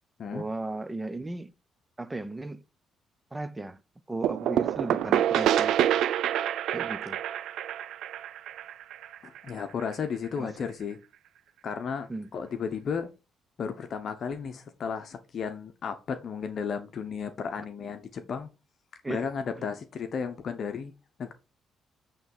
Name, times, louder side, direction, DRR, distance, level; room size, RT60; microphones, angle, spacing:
voice 1, 0.3-1.5 2.0-2.6 3.3-3.8 4.1-5.7 6.7-7.2 10.4-10.5 12.1-12.3 19.0-19.2, right 2 dB, 15° right, 0.8 m, -35 dB
sound 1, 4.2-9.8, right 11 dB, 80° right, 0.4 m, -27 dB
voice 2, 9.2-11.0 11.6-13.1 13.6-18.5 19.1-20.9 21.2-21.3, left 6 dB, 55° left, 1.0 m, -34 dB
9.0 x 3.3 x 5.5 m
cardioid pair, 90°, 0 cm